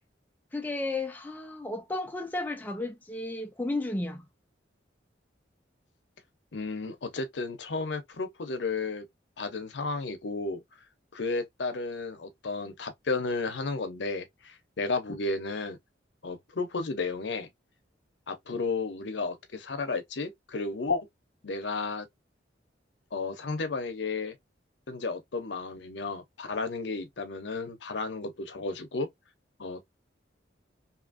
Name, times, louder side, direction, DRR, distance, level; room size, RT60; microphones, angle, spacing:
voice 1, 0.5-4.3, left 2 dB, 10° left, 0.4 m, -33 dB
voice 2, 6.5-9.0 9.4-10.6 11.1-15.8 16.2-17.5 18.3-21.1 21.4-22.1 23.1-24.4 24.9-29.1 29.6-29.9, left 3 dB, 70° left, 0.6 m, -33 dB
2.7 x 2.5 x 2.5 m
head